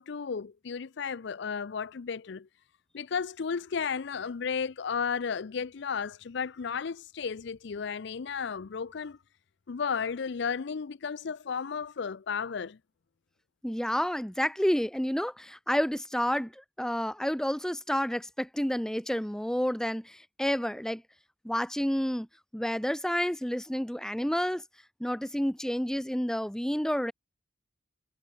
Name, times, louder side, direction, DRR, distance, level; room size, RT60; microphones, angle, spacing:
voice 1, 0.0-2.5 2.9-9.2 9.7-12.8, left 6 dB, 60° left, 0.5 m, -33 dB
voice 2, 13.6-21.0 21.4-22.3 22.5-24.6 25.0-27.1, equal, 5° left, 0.6 m, -30 dB
head